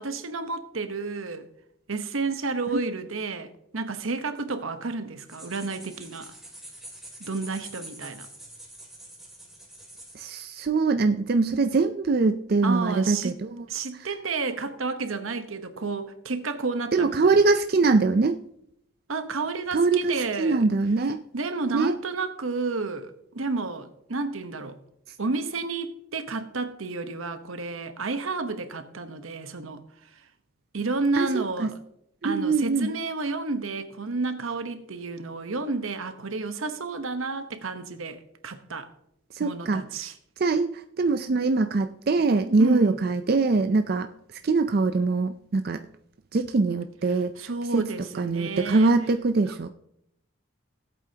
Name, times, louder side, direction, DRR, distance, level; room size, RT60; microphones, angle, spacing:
voice 1, 0.0-1.5 1.9-6.3 7.2-8.3 12.6-13.4 13.7-17.3 19.1-20.6 21.3-24.8 25.2-29.8 30.7-31.8 32.2-38.9 39.4-40.1 42.6-43.0 47.4-48.9 49.5-49.6, right 3 dB, 80° right, 1.0 m, -31 dB
sound 1, 5.2-10.4, right 1 dB, ahead, 2.3 m, -45 dB
voice 2, 10.1-13.7 16.9-18.4 19.7-21.2 21.7-22.0 31.1-31.7 32.2-32.9 39.3-39.8 40.4-44.1 44.4-45.9 46.3-47.3 47.7-49.7, right 3 dB, 45° right, 0.4 m, -23 dB
18.0 x 8.3 x 2.8 m
head